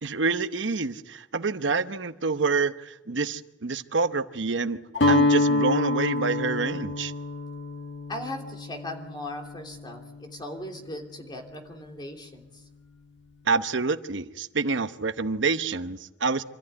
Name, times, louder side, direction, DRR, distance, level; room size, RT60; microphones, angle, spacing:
voice 1, 0.0-4.8 5.1-7.1 13.5-16.4, right 4 dB, 85° right, 11 dB, 1.0 m, -27 dB
Guitar, 4.9-11.0, left 2 dB, 70° left, 1.7 m, -27 dB
voice 2, 8.1-12.6, left 1 dB, 25° left, 3 dB, 3.0 m, -38 dB
26.5 x 14.0 x 9.7 m, 1.0 s
head